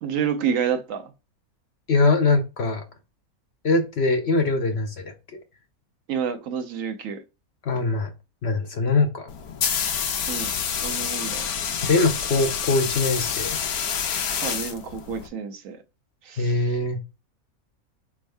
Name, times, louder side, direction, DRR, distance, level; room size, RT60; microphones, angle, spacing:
voice 1, 0.0-1.1 6.1-7.2 10.3-10.5 10.8-11.5 14.4-15.8 16.2-16.6, right 7 dB, 70° right, 1.0 m, -29 dB
voice 2, 1.9-2.8 3.6-5.1 7.6-8.1 8.4-9.3 11.8-13.6 16.4-17.0, left 3 dB, 55° left, 0.8 m, -22 dB
sound 1, 9.3-15.3, left 7 dB, 90° left, 1.2 m, -28 dB
4.2 x 3.5 x 3.3 m
omnidirectional pair, 1.5 m